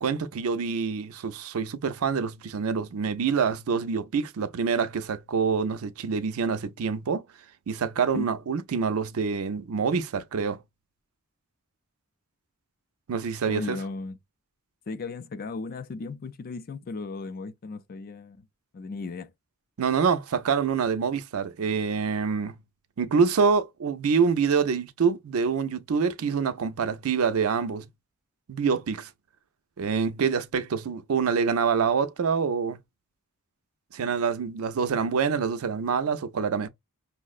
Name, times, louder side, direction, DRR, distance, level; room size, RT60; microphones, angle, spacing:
voice 1, 0.0-7.2 7.7-10.6 13.1-13.8 19.8-22.6 23.0-27.9 28.5-29.1 29.8-32.8 33.9-36.7, right 5 dB, 70° right, 0.4 m, -26 dB
voice 2, 13.5-14.2 14.9-18.5 18.7-19.3, left 3 dB, 40° left, 0.4 m, -35 dB
5.5 x 2.0 x 2.4 m
head